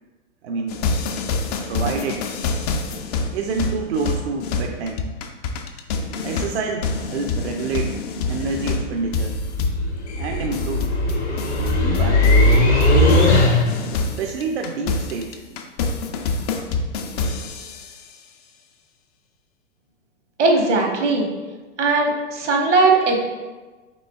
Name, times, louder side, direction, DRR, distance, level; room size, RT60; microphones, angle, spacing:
voice 1, 0.4-0.8 1.7-2.3 3.3-5.1 6.2-8.0 8.3-9.4 10.2-10.9 11.7-12.6 14.0-15.6 16.3-16.5, right 4 dB, 65° right, 3 dB, 0.5 m, -28 dB
sound 1, 0.7-13.4 13.7-18.1, left 4 dB, 35° left, 0.4 m, -27 dB
sound 2, 8.3-13.9, left 2 dB, 65° left, 1.3 m, -19 dB
voice 2, 20.4-21.3 21.8-23.2, right 3 dB, 80° right, 2 dB, 1.0 m, -18 dB
5.9 x 3.7 x 2.3 m, 1.3 s
figure-of-eight pair, 105°, 35 cm